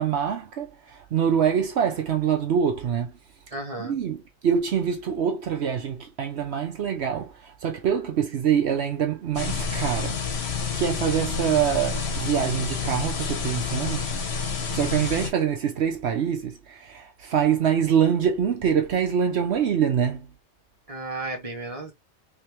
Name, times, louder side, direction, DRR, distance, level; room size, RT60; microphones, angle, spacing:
voice 1, 0.0-3.1 3.8-10.2 10.7-14.1 14.7-20.3, right 8 dB, 70° right, 1.0 m, -25 dB
voice 2, 3.5-4.0 20.9-21.9, right 2 dB, 35° right, 1.0 m, -33 dB
sound 1, 9.3-15.3, left 5 dB, 65° left, 1.2 m, -29 dB
3.4 x 3.3 x 3.0 m
omnidirectional pair, 1.2 m